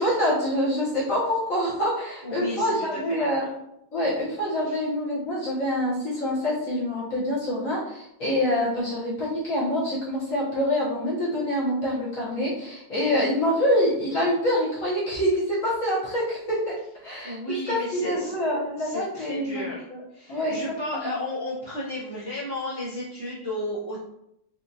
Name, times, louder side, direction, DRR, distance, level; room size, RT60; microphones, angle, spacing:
voice 1, 0.0-3.5 3.9-17.4 17.7-19.7 20.3-20.6 20.9-21.1, equal, 55° left, -8 dB, 1.0 m, -26 dB
voice 2, 2.2-3.5 4.6-4.8 17.2-18.4 18.8-19.9 20.1-24.0, left 1 dB, 65° right, -9 dB, 0.6 m, -33 dB
4.3 x 2.4 x 2.6 m, 0.80 s
omnidirectional pair, 2.3 m